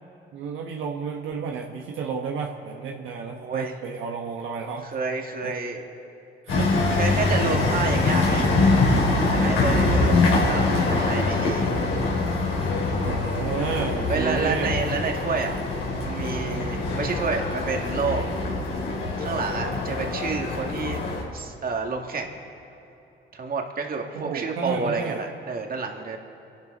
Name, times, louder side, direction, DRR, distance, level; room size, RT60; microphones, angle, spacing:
voice 1, 0.3-4.9 5.4-5.5 6.5-7.0 8.0-9.0 10.0-10.4 12.6-12.7 13.0-14.8 24.1-25.3, right 5 dB, 80° right, 1 dB, 1.2 m, -32 dB
voice 2, 3.3-3.8 4.8-5.8 6.5-6.6 7.0-8.5 9.3-11.7 14.1-15.6 16.0-18.3 19.2-21.0 21.3-22.4 23.3-26.2, right 4 dB, 50° right, 2 dB, 2.1 m, -29 dB
sound 1, 6.5-21.2, left 3 dB, 90° left, 3.1 m, -24 dB
27.0 x 11.5 x 4.0 m, 2.9 s
cardioid pair, 90°, 20 cm